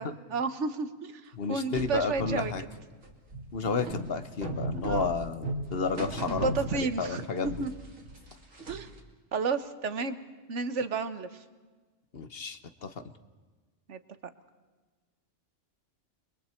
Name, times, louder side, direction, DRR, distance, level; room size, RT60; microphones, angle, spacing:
voice 1, 0.0-2.5 4.8-5.1 6.3-7.7 8.7-8.9 9.3-10.2 10.5-11.3 13.9-14.0, right 4 dB, 65° right, 11 dB, 1.5 m, -32 dB
voice 2, 1.3-2.6 3.5-7.7 12.1-13.0, left 5 dB, 50° left, 11 dB, 1.3 m, -32 dB
sound 1, 1.8-7.2 7.4-9.0, right 1 dB, 80° right, 3.1 m, -36 dB
29.5 x 23.0 x 4.5 m, 1.3 s
omnidirectional pair, 1.3 m